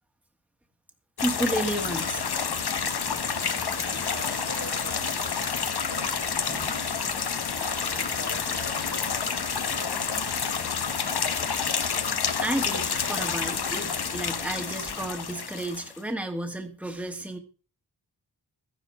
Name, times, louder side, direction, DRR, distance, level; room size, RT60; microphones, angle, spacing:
sound 1, 1.2-16.0, left 6 dB, 65° left, 1.1 m, -29 dB
voice 1, 1.2-2.2 12.4-17.4, right 1 dB, 5° right, 5 dB, 1.5 m, -31 dB
sound 2, 1.8-15.2, right 3 dB, 30° right, 1.4 m, -44 dB
voice 2, 4.1-5.6 5.8-6.9 7.8-10.1, right 3 dB, 75° right, 0 dB, 4.4 m, -46 dB
13.5 x 10.5 x 4.3 m, 0.37 s
wide cardioid pair, 70°, 41 cm